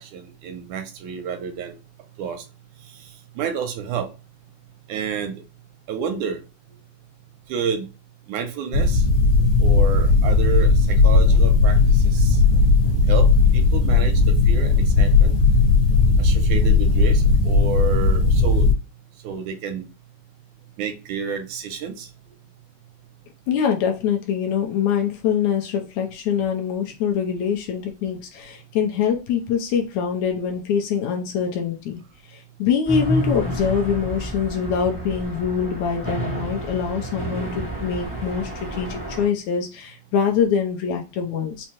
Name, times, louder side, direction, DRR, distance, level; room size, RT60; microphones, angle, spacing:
voice 1, 0.0-1.8 2.2-2.4 3.0-4.1 4.9-5.3 5.9-6.4 7.5-7.9 8.3-9.1 9.6-12.4 13.1-15.3 16.2-18.7 19.2-19.8 20.8-22.1, right 7 dB, 80° right, 5 dB, 1.9 m, -30 dB
sound 1, 8.7-18.7, left 3 dB, 60° left, 1.7 m, -16 dB
voice 2, 23.5-32.0 32.3-41.7, left 7 dB, 75° left, 2 dB, 1.8 m, -24 dB
sound 2, 32.9-39.3, equal, 20° left, 0.3 m, -29 dB
5.5 x 2.0 x 2.9 m, 0.30 s
omnidirectional pair, 3.7 m